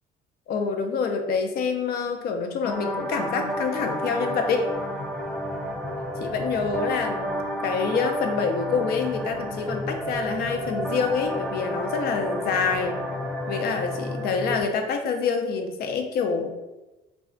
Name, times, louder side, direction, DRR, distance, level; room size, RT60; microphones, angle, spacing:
voice 1, 0.5-4.7 6.2-7.4 7.6-13.0 13.5-16.5, left 5 dB, 65° left, 5 dB, 0.5 m, -26 dB
sound 1, 2.6-14.6, equal, ahead, 0.5 m, -31 dB
3.2 x 2.3 x 3.8 m, 1.0 s
cardioid pair, 110°, 17 cm